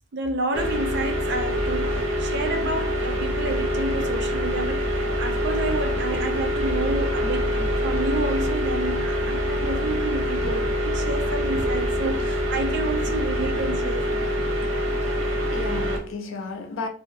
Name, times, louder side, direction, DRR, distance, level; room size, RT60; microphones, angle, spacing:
voice 1, 0.1-14.5, right 2 dB, 55° right, 0.5 m, -30 dB
sound 1, 0.5-16.0, equal, 80° right, 0.8 m, -25 dB
sound 2, 0.6-13.6, left 2 dB, 25° left, 0.3 m, -39 dB
voice 2, 14.7-15.1 15.5-16.9, left 3 dB, 75° left, 0.6 m, -34 dB
2.5 x 2.2 x 3.0 m
head